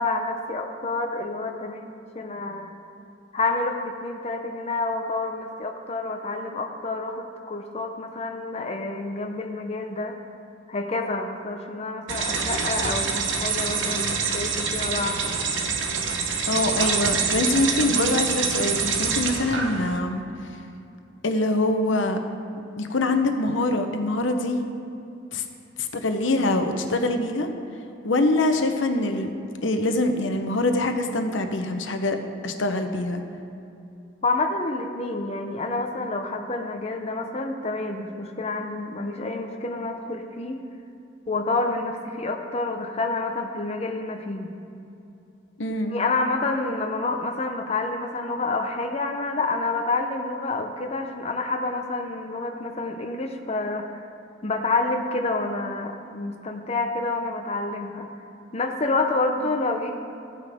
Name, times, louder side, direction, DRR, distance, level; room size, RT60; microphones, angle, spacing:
voice 1, 0.0-2.7 3.3-10.2 10.7-15.2 34.2-40.6 41.3-44.5 45.9-53.9 54.4-58.1 58.5-60.0, left 3 dB, 35° left, 3 dB, 0.7 m, -28 dB
sound 1, 12.1-20.0, right 5 dB, 80° right, 0.9 m, -26 dB
voice 2, 16.5-20.2 21.2-22.2 22.8-24.6 25.3-25.4 25.8-27.5 28.0-29.3 29.6-32.2 32.4-33.2 45.6-46.0, left 2 dB, 85° left, 6 dB, 0.8 m, -24 dB
14.5 x 9.4 x 3.5 m, 2.8 s
head